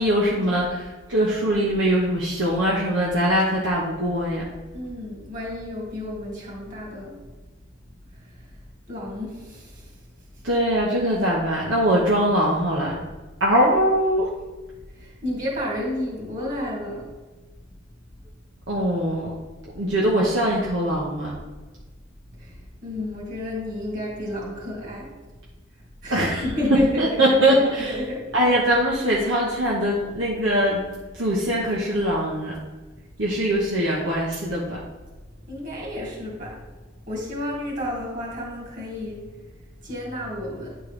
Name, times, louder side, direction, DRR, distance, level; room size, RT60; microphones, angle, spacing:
voice 1, 0.0-4.4 10.4-12.9 13.4-14.3 18.7-19.3 19.7-21.3 26.1-26.4 27.0-27.9 28.3-30.8 31.2-32.5 33.2-34.8, equal, 65° right, -5 dB, 1.1 m, -22 dB
voice 2, 4.7-7.1 8.9-9.8 15.0-17.1 22.4-25.1 26.0-28.3 35.5-36.6 37.1-39.3 39.8-40.8, left 1 dB, 40° right, -4 dB, 2.5 m, -31 dB
10.5 x 4.5 x 3.3 m, 1.2 s
head